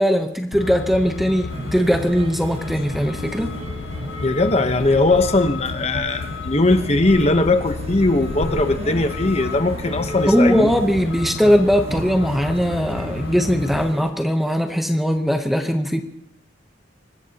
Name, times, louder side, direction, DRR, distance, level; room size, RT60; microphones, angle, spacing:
voice 1, 0.0-3.5 10.3-16.0, equal, ahead, 5 dB, 0.8 m, -20 dB
Truck, 0.5-13.9, left 4 dB, 75° left, 0.6 m, -32 dB
sound 1, 1.5-14.1, right 1 dB, 30° right, 1.3 m, -35 dB
voice 2, 4.2-10.7, left 2 dB, 35° left, 8 dB, 1.0 m, -19 dB
25.0 x 20.0 x 2.9 m, 0.78 s
head